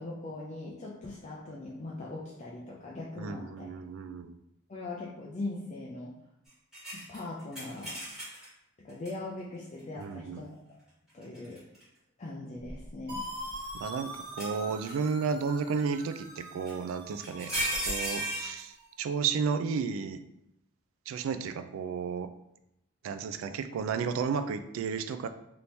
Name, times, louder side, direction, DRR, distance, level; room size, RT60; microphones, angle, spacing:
voice 1, 0.0-3.7 4.7-6.2 6.9-8.0 8.8-10.6 11.1-11.6 12.2-13.3, left 2 dB, 35° left, -4 dB, 0.4 m, -40 dB
voice 2, 3.2-4.4 10.0-10.4 13.7-17.5 17.9-20.2 21.1-22.3 23.0-25.3, right 5 dB, 75° right, 11 dB, 0.3 m, -33 dB
sound 1, 6.7-8.5 9.0-9.1 11.2-11.8 12.6-13.7 14.4-15.1 16.6-16.7 17.2-18.6, right 1 dB, 5° right, 1.3 m, -35 dB
sound 2, 13.1-18.9, equal, 55° right, 1.2 m, -44 dB
3.5 x 2.9 x 2.6 m, 0.82 s
head